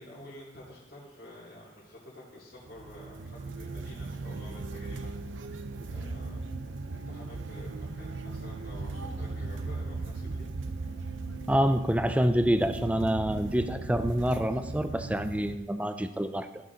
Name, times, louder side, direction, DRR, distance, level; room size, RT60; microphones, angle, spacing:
voice 1, 0.0-5.1 5.9-6.5 6.9-10.5, left 1 dB, 65° left, -10 dB, 3.6 m, -49 dB
sound 1, 2.7-15.6, right 3 dB, 85° right, 0.6 m, -38 dB
voice 2, 11.5-16.5, equal, 5° right, 9 dB, 0.5 m, -27 dB
16.0 x 6.4 x 4.1 m, 1.0 s
head